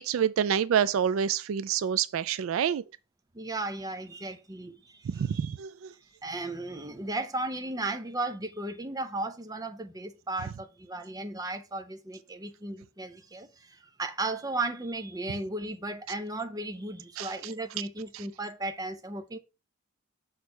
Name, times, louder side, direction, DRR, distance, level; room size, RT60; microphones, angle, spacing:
voice 1, 0.0-2.8 5.1-5.7 17.2-17.3 18.1-18.2, right 8 dB, 70° right, 0.3 m, -27 dB
voice 2, 3.3-5.4 6.2-19.4, right 2 dB, 20° right, 0.6 m, -35 dB
6.3 x 3.1 x 5.7 m
head